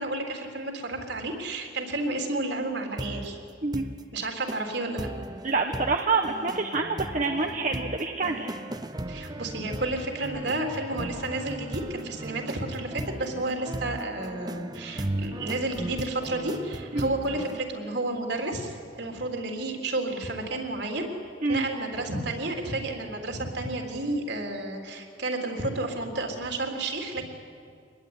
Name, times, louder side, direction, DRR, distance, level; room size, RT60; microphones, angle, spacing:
voice 1, 0.0-3.4 4.1-5.1 9.1-21.1 21.5-27.2, right 2 dB, 65° right, 2 dB, 3.8 m, -31 dB
sound 1, 3.0-3.3 3.7-4.0 4.5-4.6 5.0-17.6, right 1 dB, 20° right, 0.7 m, -37 dB
voice 2, 5.4-8.5 16.9-17.1 21.4-21.6, right 3 dB, 40° right, 3 dB, 1.2 m, -27 dB
25.0 x 21.0 x 9.9 m, 2.3 s
head